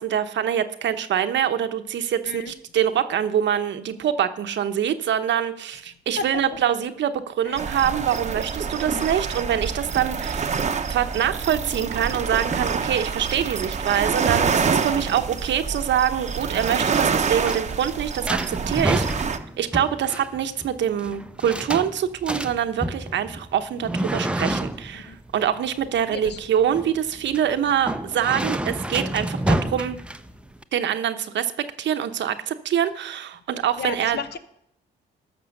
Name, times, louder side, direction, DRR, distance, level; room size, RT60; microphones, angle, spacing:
voice 1, 0.0-10.6 10.9-19.3 19.6-30.0 30.7-31.5 31.8-34.2, right 9 dB, 65° right, 9 dB, 0.9 m, -25 dB
sound 1, 7.6-19.4, right 5 dB, 35° right, 0.8 m, -27 dB
sound 2, 17.3-30.6, right 1 dB, 5° right, 0.6 m, -29 dB
voice 2, 26.1-26.4 33.8-34.4, left 6 dB, 55° left, 11 dB, 0.9 m, -33 dB
13.0 x 6.0 x 6.5 m, 0.74 s
cardioid pair, 90°, 20 cm